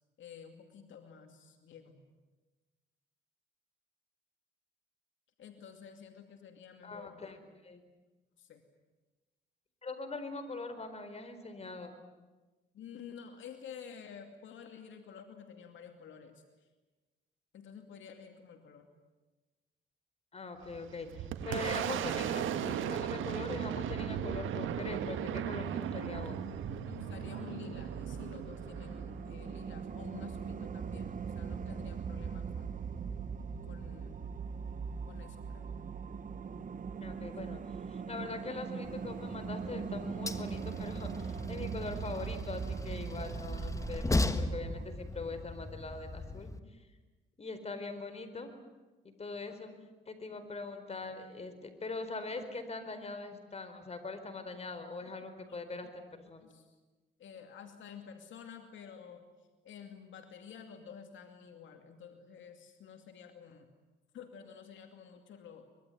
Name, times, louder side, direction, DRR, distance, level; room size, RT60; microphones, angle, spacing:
voice 1, 0.2-2.0 5.4-7.3 8.4-8.6 12.7-16.7 17.5-18.9 26.8-32.8 33.6-34.4 35.0-35.9 55.5-55.6 55.9-56.8 57.2-63.7 64.1-65.7, left 7 dB, 75° left, 5 dB, 2.5 m, -51 dB
voice 2, 6.8-7.4 7.6-7.8 9.8-11.9 20.3-26.4 37.0-37.6 37.9-46.9 47.4-48.5 49.0-49.7 50.1-56.5, left 3 dB, 30° left, 8 dB, 4.4 m, -42 dB
Boom, 20.6-30.0, right 9 dB, 85° right, 1.8 m, -37 dB
sound 1, 27.7-44.9, right 6 dB, 40° right, 1.2 m, -40 dB
Train, 38.8-46.6, left 2 dB, 15° left, 1.6 m, -38 dB
24.5 x 22.0 x 9.4 m, 1.2 s
cardioid pair, 90°, 20 cm